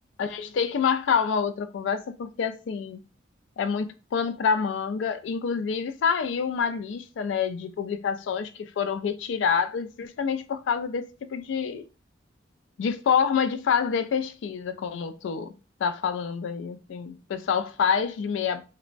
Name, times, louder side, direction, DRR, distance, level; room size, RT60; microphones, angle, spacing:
voice 1, 0.2-3.0 3.6-11.9 12.8-15.5 15.8-18.6, left 6 dB, 80° left, 0.3 m, -27 dB
3.3 x 2.0 x 2.4 m
head